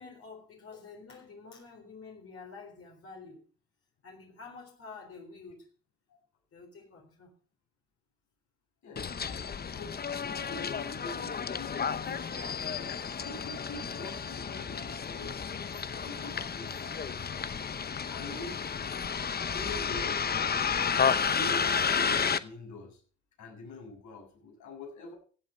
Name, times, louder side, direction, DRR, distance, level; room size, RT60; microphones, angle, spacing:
voice 1, 0.0-3.5 4.0-5.7 6.5-7.3, left 4 dB, 50° left, 1 dB, 3.9 m, -48 dB
Bus, 9.0-22.4, left 6 dB, 30° left, 0.8 m, -32 dB
voice 2, 9.7-15.4 16.0-17.4 18.1-18.6 19.4-21.0 21.3-23.0 23.4-25.1, left 2 dB, 70° left, 1 dB, 7.1 m, -45 dB
15.5 x 8.4 x 5.5 m, 0.43 s
cardioid pair, 90°, 30 cm